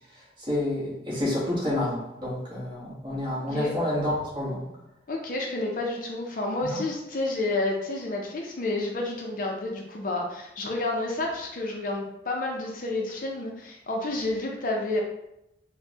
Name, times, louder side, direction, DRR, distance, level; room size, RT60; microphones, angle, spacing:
voice 1, 0.4-4.7 6.6-6.8, left 1 dB, 25° right, -6 dB, 1.2 m, -29 dB
voice 2, 5.1-15.0, left 2 dB, 50° left, 0 dB, 0.5 m, -30 dB
5.3 x 2.2 x 2.8 m, 0.84 s
head